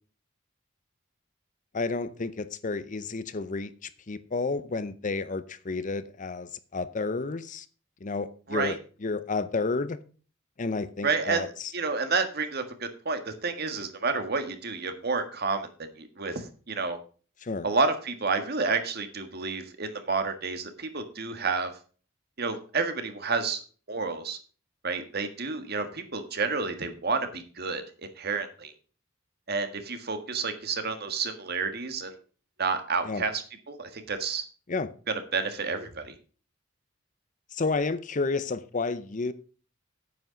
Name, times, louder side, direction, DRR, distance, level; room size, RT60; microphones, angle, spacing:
voice 1, 1.7-7.7 8.0-10.0 10.6-11.7 17.4-17.7 33.0-33.2 34.7-34.9 37.5-39.3, left 3 dB, 40° left, 0.7 m, -31 dB
voice 2, 11.0-15.7 16.0-17.0 17.6-21.7 22.4-23.6 23.9-24.4 24.8-28.7 29.5-32.2 32.6-34.4 35.1-36.1, right 4 dB, 55° right, 1.6 m, -30 dB
9.4 x 8.3 x 5.1 m
head